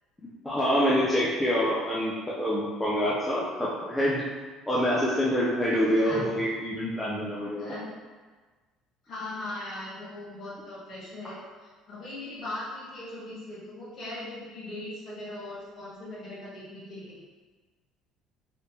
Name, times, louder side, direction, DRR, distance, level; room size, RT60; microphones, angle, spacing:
voice 1, 0.4-4.2 4.7-7.7, equal, 10° left, -7 dB, 0.4 m, -26 dB
voice 2, 9.0-17.2, left 2 dB, 45° left, -8 dB, 1.3 m, -39 dB
3.3 x 2.9 x 2.8 m, 1.4 s
cardioid pair, 140°, 0 cm